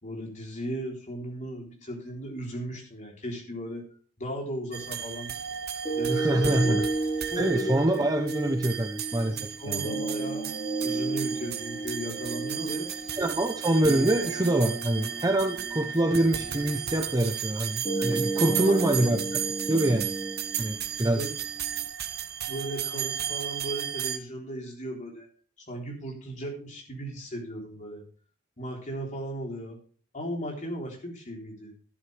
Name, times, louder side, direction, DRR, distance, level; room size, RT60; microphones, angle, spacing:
voice 1, 0.0-3.9 4.2-5.4 5.9-6.9 7.2-8.0 9.2-10.5 10.8-13.2 18.4-18.9 21.1-21.3 22.5-25.3 25.7-28.0 28.6-29.8 30.1-31.7, equal, 35° left, 0 dB, 3.8 m, -36 dB
sound 1, 4.7-24.2, right 9 dB, 45° right, 0.9 m, -34 dB
sound 2, 5.8-21.8, right 2 dB, 15° left, 4.5 m, -34 dB
voice 2, 6.1-6.7 7.4-9.4 9.7-9.9 13.2-19.2 19.7-20.1 20.6-21.2, right 1 dB, 15° right, 5 dB, 0.9 m, -25 dB
12.5 x 11.0 x 3.4 m, 0.41 s
head